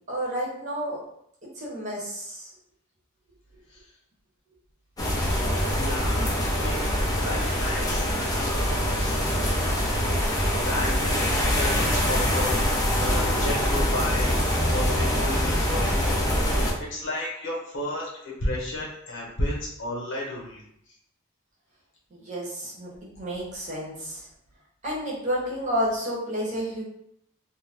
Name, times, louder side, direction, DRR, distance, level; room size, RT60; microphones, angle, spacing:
voice 1, 0.1-1.0 1.6-2.5 22.1-22.9 23.2-24.3 24.8-26.8, equal, 35° right, -5 dB, 0.9 m, -30 dB
sound 1, 5.0-16.7, equal, 20° left, 0.5 m, -24 dB
voice 2, 5.8-6.2 6.5-9.2 10.6-12.6 12.9-16.5 16.9-20.6, left 1 dB, 65° left, -3 dB, 0.9 m, -33 dB
2.5 x 2.1 x 3.3 m, 0.73 s
head